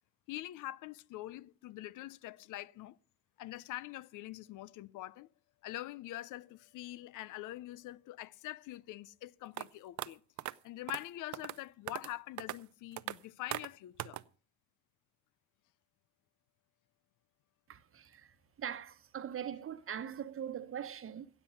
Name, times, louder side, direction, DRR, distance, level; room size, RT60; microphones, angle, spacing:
voice 1, 0.3-3.0 3.4-5.3 5.6-10.2 10.6-14.2, left 15 dB, 85° left, 0.6 m, -44 dB
sound 1, 9.6-9.7 10.0-10.1 10.4-10.5 10.9-11.0 11.3-11.6 11.9-12.1 12.4-12.6 13.0-13.2 13.5-13.7 14.0-14.2, right 15 dB, 70° right, 0.6 m, -39 dB
voice 2, 17.7-18.2 18.6-21.3, right 9 dB, 45° right, 1.0 m, -41 dB
16.0 x 8.2 x 5.7 m
cardioid pair, 90°, 30 cm